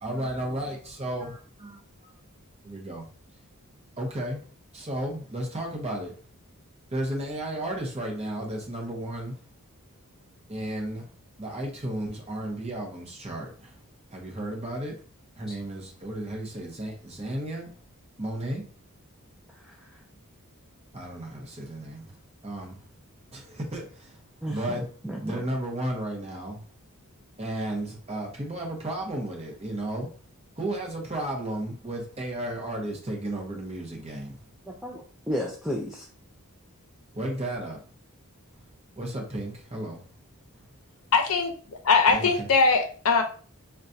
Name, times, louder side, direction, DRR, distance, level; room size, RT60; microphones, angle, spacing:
voice 1, 0.0-2.1 2.6-3.0 4.0-4.4 4.7-6.1 6.9-9.3 10.5-11.0 11.4-13.7 14.1-14.9 15.4-17.7 18.2-18.6 20.9-22.1 22.4-22.8 23.3-24.2 24.5-24.9 25.2-26.6 27.4-30.1 30.6-34.4 37.1-37.8 39.0-40.0 42.1-42.3, right 1 dB, 30° right, 0.8 m, -33 dB
voice 2, 24.4-25.4 34.7-36.1, equal, ahead, 0.3 m, -33 dB
voice 3, 41.1-43.2, left 4 dB, 70° left, 0.6 m, -21 dB
4.0 x 2.2 x 2.6 m
head